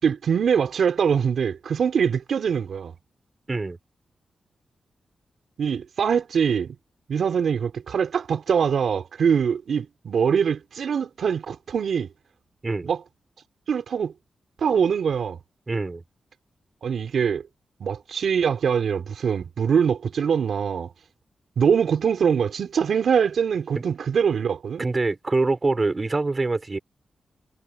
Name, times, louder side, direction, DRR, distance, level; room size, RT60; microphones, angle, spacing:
voice 1, 0.0-2.9 5.6-6.8 7.1-12.1 12.8-13.0 13.7-14.1 14.6-15.4 16.8-17.4 17.8-20.9 21.6-24.9, right 7 dB, 70° right, 4.3 m, -23 dB
voice 2, 15.7-16.0 23.7-23.8 24.8-26.8, right 3 dB, 30° right, 5.1 m, -24 dB
wide cardioid pair, 115°, 0 cm